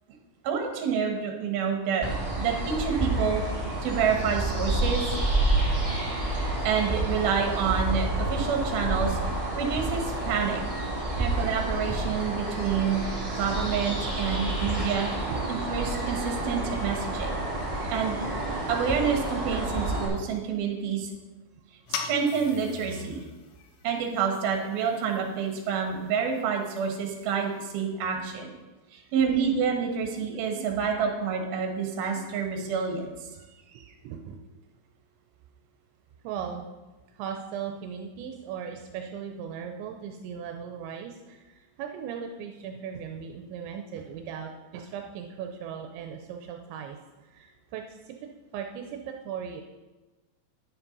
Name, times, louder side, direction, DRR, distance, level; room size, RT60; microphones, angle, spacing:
voice 1, 0.4-2.0 2.4-3.4 3.8-5.0 6.6-9.2 9.6-10.6 11.2-13.0 13.4-17.4 17.9-18.2 18.7-21.1 21.9-23.2 23.8-28.5 28.9-33.1, right 6 dB, 65° right, 2 dB, 3.0 m, -28 dB
sound 1, 2.0-20.1, right 2 dB, 25° right, 0.7 m, -29 dB
sound 2, 21.9-27.6, left 6 dB, 80° left, 3.0 m, -42 dB
voice 2, 28.9-29.5 30.9-31.1 33.3-34.4 36.2-36.7 37.1-48.2 48.5-49.6, right 7 dB, 85° right, 4 dB, 2.9 m, -38 dB
10.5 x 7.2 x 5.3 m, 1.2 s
omnidirectional pair, 5.2 m